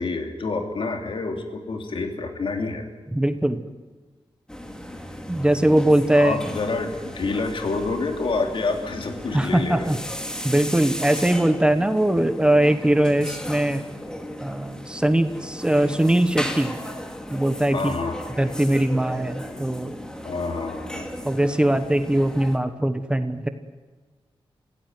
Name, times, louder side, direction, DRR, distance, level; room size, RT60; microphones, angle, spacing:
voice 1, 0.0-2.9 6.1-9.9 17.7-18.3 20.2-21.1, left 3 dB, 65° left, 4 dB, 3.2 m, -28 dB
voice 2, 3.1-3.6 5.3-6.5 9.3-10.0 10.4-13.8 14.4-16.7 17.3-17.9 18.4-20.0 21.2-23.5, right 1 dB, 10° right, 9 dB, 1.1 m, -21 dB
sound 1, 4.5-22.6, equal, 10° left, 2.4 m, -36 dB
26.5 x 16.5 x 9.6 m, 1.4 s
wide cardioid pair, 150°, 9 cm